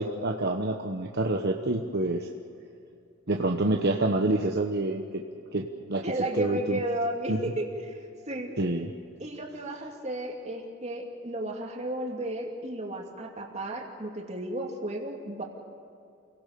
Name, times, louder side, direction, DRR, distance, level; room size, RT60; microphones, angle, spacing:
voice 1, 0.0-2.3 3.3-5.2 5.5-6.0 6.4-6.8 7.3-7.4 8.6-8.9, right 2 dB, 55° right, 2 dB, 1.1 m, -27 dB
voice 2, 6.0-8.5 9.2-15.4, right 1 dB, 35° right, 1 dB, 2.8 m, -33 dB
28.5 x 17.5 x 6.9 m, 2.5 s
head